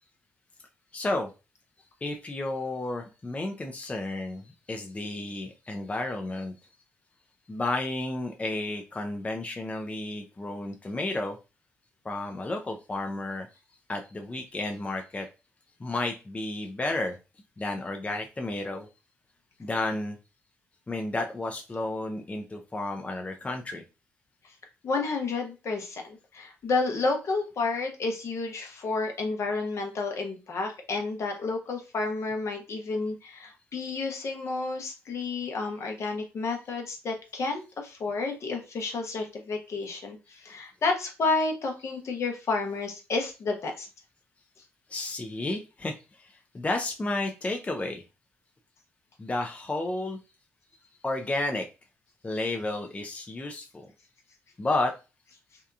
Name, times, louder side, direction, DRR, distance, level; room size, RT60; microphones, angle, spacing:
voice 1, 0.9-1.3 2.0-6.5 7.5-11.4 12.0-13.5 13.9-15.3 15.8-17.2 17.6-18.9 19.6-20.2 20.9-23.8 44.9-48.0 49.2-50.2 51.0-51.7 52.2-53.9 54.6-54.9, left 2 dB, 25° left, 4 dB, 0.5 m, -32 dB
voice 2, 24.8-43.9, left 3 dB, 60° left, 3 dB, 0.8 m, -31 dB
2.7 x 2.3 x 2.3 m, 0.29 s
hypercardioid pair, 50°, 6 cm